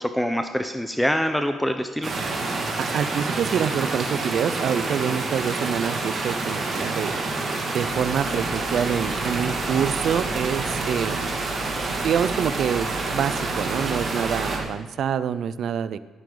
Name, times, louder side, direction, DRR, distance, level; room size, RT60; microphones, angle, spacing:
voice 1, 0.0-2.1, equal, 5° left, 7 dB, 0.7 m, -25 dB
sound 1, 2.0-14.6, right 3 dB, 50° right, 2.3 m, -28 dB
voice 2, 2.8-7.1 7.7-11.3 12.0-16.0, right 8 dB, 65° right, 15 dB, 0.5 m, -26 dB
sound 2, 7.8-14.7, right 1 dB, 85° right, 2.7 m, -40 dB
16.0 x 9.7 x 3.9 m, 1.3 s
cardioid pair, 90°, 0 cm